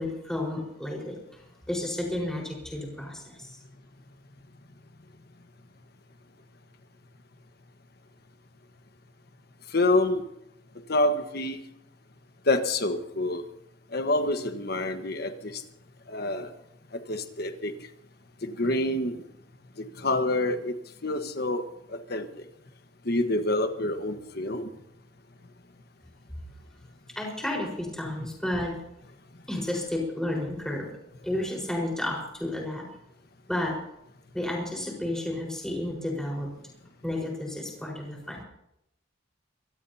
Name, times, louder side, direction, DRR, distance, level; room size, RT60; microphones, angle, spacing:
voice 1, 0.0-3.6 27.1-28.8 29.5-30.9 31.2-32.9 33.5-33.8 34.3-36.5 37.0-38.4, left 1 dB, 5° left, -2 dB, 4.7 m, -32 dB
voice 2, 9.7-10.2 10.9-11.6 12.4-13.4 13.9-15.6 16.1-16.5 16.9-17.7 18.4-19.2 19.8-20.8 21.0-22.4 23.0-24.7, left 2 dB, 50° left, 7 dB, 1.4 m, -27 dB
24.0 x 17.0 x 2.9 m, 0.81 s
head